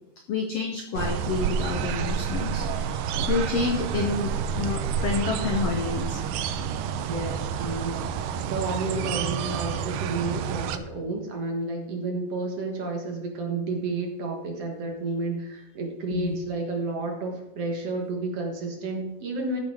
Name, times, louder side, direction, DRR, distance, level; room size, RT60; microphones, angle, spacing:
voice 1, 0.3-6.2 8.9-9.1 16.1-16.3, left 4 dB, 85° left, 3 dB, 1.3 m, -29 dB
sound 1, 0.9-10.8, right 7 dB, 75° right, 2.1 m, -29 dB
voice 2, 7.1-19.6, right 3 dB, 55° right, 2 dB, 1.8 m, -31 dB
14.0 x 6.9 x 4.9 m, 0.92 s
omnidirectional pair, 4.5 m